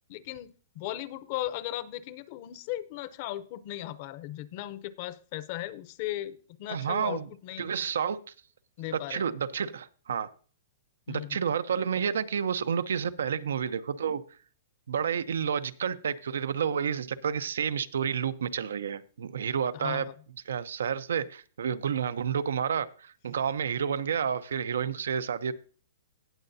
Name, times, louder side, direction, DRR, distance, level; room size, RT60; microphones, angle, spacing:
voice 1, 0.1-7.7 8.8-9.3 11.1-11.4 19.7-20.1, left 14 dB, 35° left, 15 dB, 0.6 m, -37 dB
voice 2, 6.7-7.3 7.6-8.2 9.1-10.3 11.1-14.2 14.9-20.1 20.5-25.5, right 7 dB, 90° right, 13 dB, 0.7 m, -30 dB
18.0 x 6.7 x 2.7 m, 0.40 s
hypercardioid pair, 170°, 0 cm